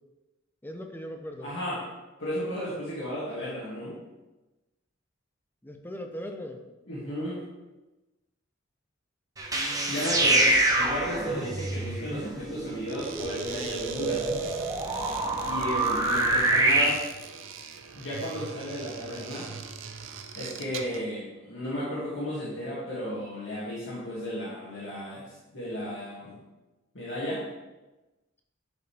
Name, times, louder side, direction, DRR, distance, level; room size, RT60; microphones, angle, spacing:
voice 1, 0.6-1.5 5.6-6.6 9.5-10.4 11.2-11.4, equal, 10° left, 4 dB, 0.7 m, -40 dB
voice 2, 1.4-1.8 2.2-4.0 6.9-7.4 9.9-14.2 15.5-17.0 17.9-19.5 20.3-26.4 26.9-27.4, equal, 70° left, -8 dB, 2.5 m, -34 dB
sound 1, 9.4-16.8, right 2 dB, 20° right, 1.0 m, -26 dB
sound 2, 12.8-21.1, right 6 dB, 80° right, 0.7 m, -42 dB
10.5 x 5.5 x 3.5 m, 1.1 s
head